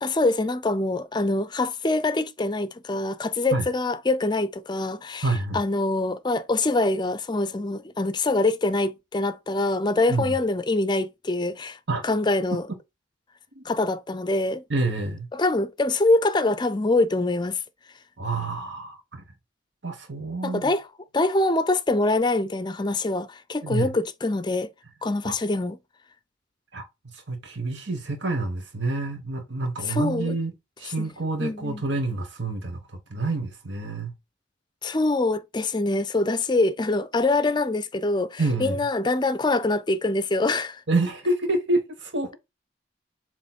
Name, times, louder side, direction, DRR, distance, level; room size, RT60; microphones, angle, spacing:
voice 1, 0.0-5.3 5.5-11.8 12.0-12.6 13.6-14.6 15.3-17.6 20.4-20.9 21.1-24.7 25.0-25.8 29.8-30.4 31.0-31.1 31.4-31.8 34.8-40.8, left 2 dB, 25° left, 0.5 m, -24 dB
voice 2, 5.2-5.6 10.1-10.3 11.9-12.0 13.5-13.6 14.7-15.3 18.2-19.2 19.8-20.7 23.6-23.9 25.2-25.4 26.7-26.9 27.1-30.5 30.8-34.1 38.4-38.8 40.9-42.4, right 2 dB, 70° right, 1.4 m, -28 dB
7.5 x 3.1 x 4.4 m
head